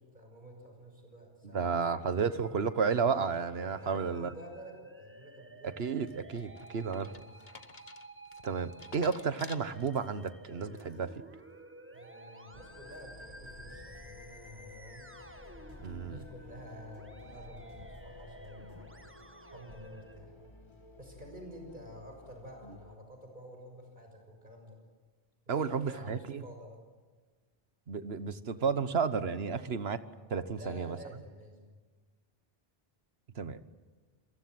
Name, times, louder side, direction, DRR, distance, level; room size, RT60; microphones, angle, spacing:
voice 1, 0.0-2.2 3.8-5.7 7.1-7.4 11.9-15.1 16.0-19.1 19.5-20.5 21.0-24.8 25.5-26.8 30.5-31.8, equal, 50° right, 3 dB, 6.7 m, -50 dB
voice 2, 1.5-4.3 5.6-7.1 8.4-11.1 15.8-16.2 25.5-26.4 27.9-30.0 30.3-31.0 33.4-33.6, right 5 dB, 80° right, 12 dB, 1.4 m, -32 dB
Musical instrument, 2.2-20.2, right 2 dB, 10° right, 1.4 m, -53 dB
sound 1, 6.1-10.3 10.7-11.2, left 5 dB, 50° left, 1.3 m, -52 dB
sound 2, 12.5-23.0, left 2 dB, 30° left, 1.5 m, -53 dB
28.0 x 23.5 x 7.9 m, 1.4 s
omnidirectional pair, 1.0 m